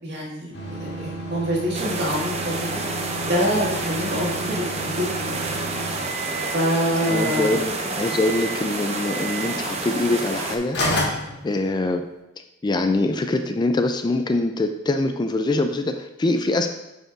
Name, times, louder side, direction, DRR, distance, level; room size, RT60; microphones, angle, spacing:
voice 1, 0.0-2.8 3.2-5.6 6.5-7.6, equal, 55° right, -4 dB, 1.9 m, -26 dB
sound 1, 0.5-6.6 7.0-7.6 8.0-8.6 9.0-9.5 10.3-10.4 10.7-12.0, right 1 dB, 60° left, 1.9 m, -31 dB
sound 2, 1.7-10.6, right 3 dB, 30° right, 0.7 m, -29 dB
voice 2, 7.1-10.8 11.4-12.0 12.6-16.7, left 2 dB, 20° left, 7 dB, 0.3 m, -23 dB
9.2 x 5.2 x 2.5 m, 0.96 s
head